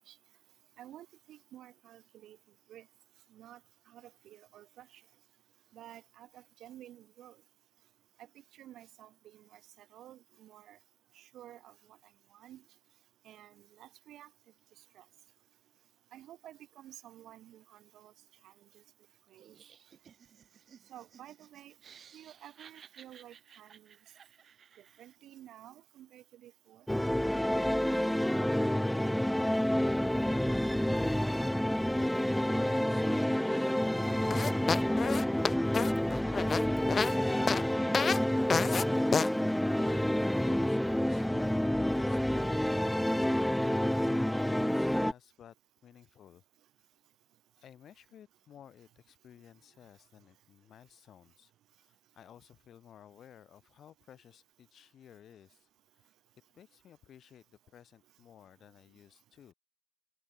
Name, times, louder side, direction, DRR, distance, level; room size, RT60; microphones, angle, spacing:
voice 1, 0.8-2.4 2.7-2.9 3.3-3.6 3.9-4.9 5.7-7.4 8.6-9.6 9.9-10.8 11.2-11.7 12.3-12.6 13.3-14.3 15.0-15.1 16.1-18.1 18.4-18.5 19.3-19.6 20.9-21.7 22.1-23.9 25.0-26.9, right 12 dB, 80° right, 1.9 m, -52 dB
Laughter, 19.4-25.2, right 7 dB, 55° right, 4.8 m, -58 dB
sound 1, 26.9-45.1, left 1 dB, 5° left, 0.9 m, -29 dB
voice 2, 32.6-33.8 34.5-35.9 39.8-40.1 40.4-43.3 43.6-45.5 45.8-46.4 46.8-46.9 47.6-56.1 56.5-59.5, left 10 dB, 65° left, 7.1 m, -56 dB
sound 2, 34.3-37.1 37.5-37.6 37.9-38.2 38.5-38.8 39.1-39.3, left 5 dB, 40° left, 0.5 m, -29 dB
cardioid pair, 90°, 0 cm